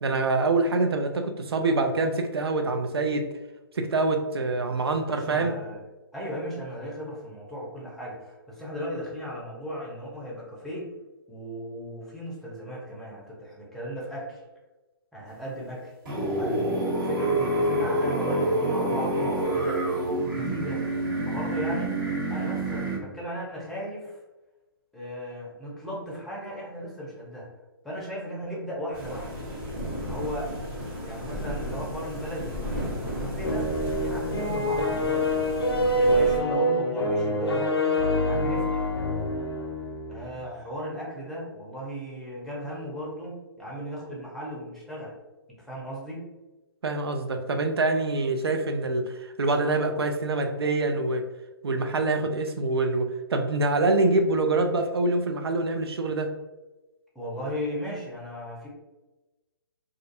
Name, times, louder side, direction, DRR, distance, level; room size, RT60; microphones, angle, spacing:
voice 1, 0.0-3.2 3.8-5.6 46.8-51.3 51.6-56.3, right 2 dB, 80° right, 5 dB, 0.4 m, -25 dB
voice 2, 5.0-5.8 6.1-10.9 11.3-14.4 15.1-15.9 16.3-19.8 20.3-20.8 21.2-22.0 22.3-24.2 24.9-27.5 27.8-29.3 30.0-30.5 31.0-33.7 34.0-35.2 35.9-38.9 40.1-45.2 45.6-46.3 57.1-58.7, equal, ahead, -6 dB, 0.6 m, -36 dB
sound 1, 16.0-23.0, right 1 dB, 55° right, 1.4 m, -27 dB
sound 2, 28.9-36.4, equal, 30° right, 1.2 m, -34 dB
sound 3, 33.4-40.4, equal, 90° left, 0.5 m, -26 dB
2.5 x 2.3 x 2.5 m, 1.1 s
figure-of-eight pair, 130°, 13 cm